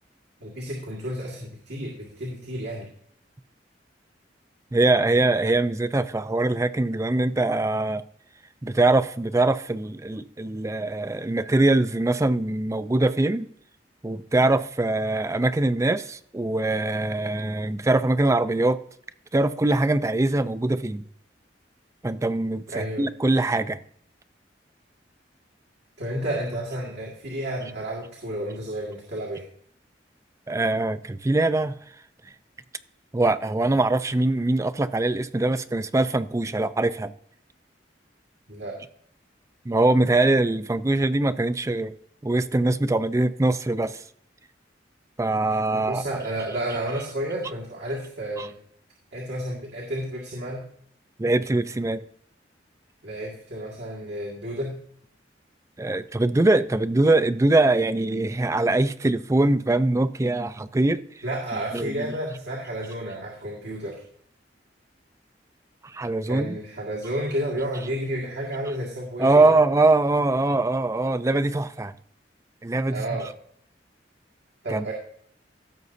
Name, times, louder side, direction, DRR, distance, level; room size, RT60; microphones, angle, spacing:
voice 1, 0.4-2.9 22.7-23.0 26.0-29.5 38.5-38.8 45.4-48.5 49.1-50.7 53.0-54.8 61.2-64.0 66.3-69.5 72.9-73.3 74.6-74.9, right 1 dB, 70° right, 1.9 m, -31 dB
voice 2, 4.7-8.0 8.6-13.5 14.0-18.8 19.3-21.0 22.0-23.8 30.5-31.7 33.1-37.1 39.7-41.9 42.2-44.0 45.2-46.0 48.4-48.5 51.2-52.0 55.8-61.0 61.7-62.1 65.8-66.6 69.2-71.9 72.6-72.9 74.7-74.9, right 2 dB, 15° right, 0.4 m, -22 dB
16.0 x 6.6 x 2.7 m
head